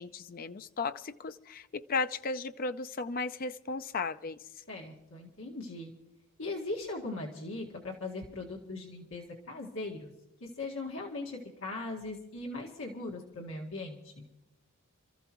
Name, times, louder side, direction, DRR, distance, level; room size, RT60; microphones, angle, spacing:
voice 1, 0.0-4.4, left 4 dB, 40° left, 0.5 m, -35 dB
voice 2, 4.7-5.9 6.4-10.1 10.4-14.3, left 2 dB, 60° left, 1.9 m, -39 dB
28.5 x 14.0 x 3.1 m
head